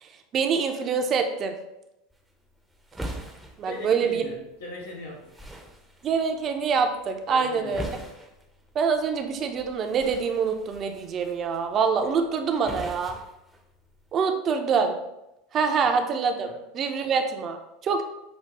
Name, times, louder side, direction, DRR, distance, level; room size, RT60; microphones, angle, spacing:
voice 1, 0.0-1.5 3.6-4.2 6.0-7.8 8.7-13.2 14.1-15.0 15.5-16.5 16.7-18.0, right 5 dB, 40° right, 5 dB, 0.6 m, -25 dB
sound 1, 2.1-14.1, right 1 dB, 5° right, 0.7 m, -43 dB
voice 2, 3.6-5.5 7.3-8.2 15.8-16.0 16.4-16.6, left 2 dB, 85° left, -3 dB, 1.5 m, -40 dB
6.1 x 2.3 x 3.4 m, 0.88 s
hypercardioid pair, 85°, 0 cm